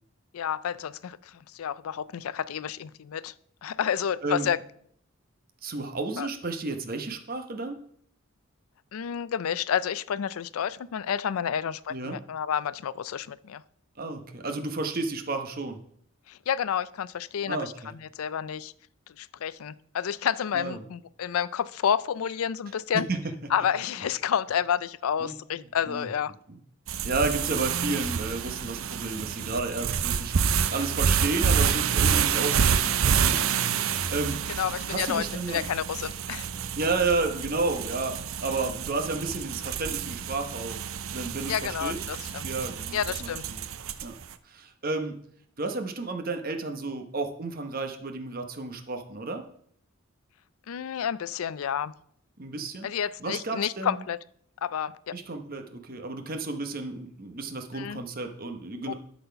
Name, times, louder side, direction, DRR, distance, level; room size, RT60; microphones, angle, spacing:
voice 1, 0.3-3.3 3.6-4.6 6.2-6.3 8.9-13.6 16.3-18.7 19.2-23.1 23.5-26.3 34.6-36.5 41.5-42.5 42.9-43.5 50.7-51.9 52.8-54.2 54.6-55.2 57.7-58.0 58.9-59.0, left 8 dB, 85° left, 18 dB, 0.4 m, -30 dB
voice 2, 5.6-7.8 11.9-12.2 14.0-15.8 17.5-17.9 20.5-20.8 23.1-23.2 25.2-25.4 25.9-26.1 26.5-26.6 27.0-33.5 33.8-34.5 34.8-35.6 36.7-38.1 38.4-40.8 41.1-42.0 42.4-43.6 44.0-44.2 44.4-45.2 45.6-49.4 52.4-52.9 53.2-54.0 55.1-58.9, right 3 dB, 45° right, 5 dB, 1.0 m, -32 dB
sound 1, 26.9-44.2, right 7 dB, 75° right, 0.5 m, -28 dB
11.5 x 4.2 x 5.6 m, 0.65 s
head